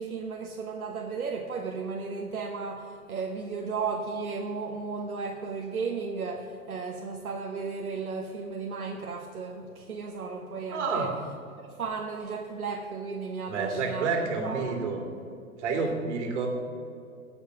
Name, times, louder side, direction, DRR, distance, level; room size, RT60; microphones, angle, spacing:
voice 1, 0.0-11.1 11.5-14.8, right 4 dB, 75° right, 2 dB, 1.1 m, -34 dB
voice 2, 10.7-11.1 13.5-15.0 15.6-16.5, right 4 dB, 50° right, 3 dB, 2.4 m, -29 dB
16.0 x 5.7 x 6.0 m, 2.5 s
figure-of-eight pair, 110°, 43 cm